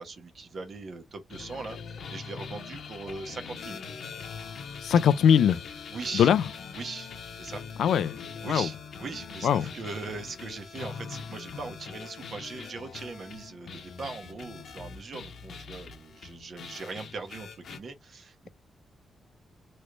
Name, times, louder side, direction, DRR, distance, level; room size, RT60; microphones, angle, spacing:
voice 1, 0.0-3.8 5.9-6.3 6.7-7.6 8.4-18.5, right 4 dB, 50° right, 1.0 m, -40 dB
sound 1, 1.3-17.8, left 5 dB, 65° left, 0.9 m, -42 dB
voice 2, 4.8-5.6 6.1-6.4 7.8-8.2 8.4-8.7 9.4-9.7, left 8 dB, 85° left, 0.4 m, -21 dB
3.2 x 3.1 x 2.5 m
cardioid pair, 130°, 0 cm